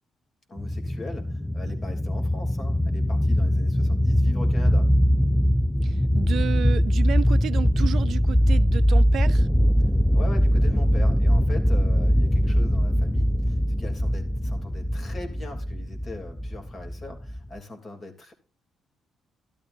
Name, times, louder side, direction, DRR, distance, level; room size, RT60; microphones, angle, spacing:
voice 1, 0.5-4.9 10.1-18.3, left 2 dB, 40° left, 3.2 m, -41 dB
sound 1, 0.6-17.6, equal, ahead, 0.4 m, -22 dB
voice 2, 5.8-9.5, right 10 dB, 65° right, 0.4 m, -32 dB
12.5 x 12.5 x 2.7 m
cardioid pair, 90°, 0 cm